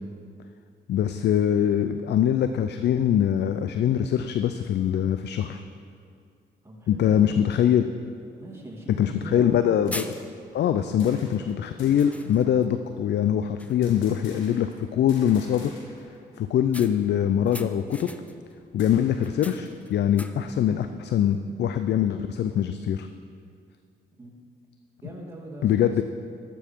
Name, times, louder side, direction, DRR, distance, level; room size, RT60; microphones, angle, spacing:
voice 1, 0.9-5.6 6.9-7.8 9.0-10.1 10.5-15.7 16.4-18.1 18.7-23.1 25.6-26.0, left 9 dB, 65° left, 9 dB, 0.4 m, -23 dB
voice 2, 6.6-7.8 8.3-9.7 24.2-24.3 25.0-26.0, right 1 dB, 15° right, -3 dB, 2.6 m, -41 dB
sound 1, 8.6-8.7 9.4-9.6 9.9-10.6 11.3-11.5 12.0-12.8 13.2-13.3 13.6-14.0 16.7-18.5 19.2-20.6, left 1 dB, 5° left, 0.6 m, -41 dB
sound 2, 9.8-11.5 11.8-12.3 13.8-14.8 15.1-16.2 16.4-16.5 16.9-19.5, left 3 dB, 85° left, 1.7 m, -50 dB
12.5 x 7.0 x 4.6 m, 2.3 s
supercardioid pair, 60°, 19 cm